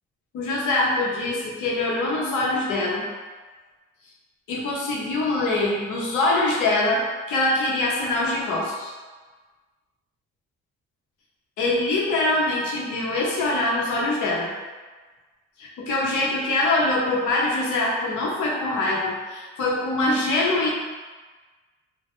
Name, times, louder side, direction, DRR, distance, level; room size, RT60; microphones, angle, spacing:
voice 1, 0.3-3.0 4.5-7.0 7.3-8.9 11.6-14.5 15.6-20.7, left 2 dB, 80° left, -4 dB, 0.7 m, -23 dB
2.1 x 2.1 x 2.9 m, 1.3 s
cardioid pair, 90°, 30 cm